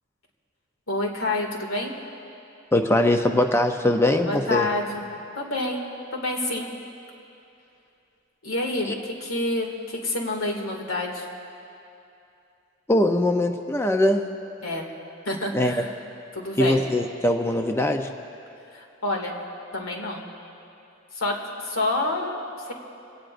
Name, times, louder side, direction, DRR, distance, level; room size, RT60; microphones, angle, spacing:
voice 1, 0.9-2.0 4.2-5.0 5.4-6.7 8.4-11.3 14.6-14.9 15.3-15.9 16.3-16.8 18.7-19.4 19.7-20.2 21.1-22.4 22.7-22.8, left 2 dB, 90° left, 0 dB, 2.3 m, -28 dB
voice 2, 2.7-4.7 8.9-9.0 12.9-14.3 15.5-15.8 16.6-18.1, left 1 dB, 10° left, 5 dB, 0.6 m, -21 dB
26.0 x 17.5 x 2.6 m, 2.7 s
head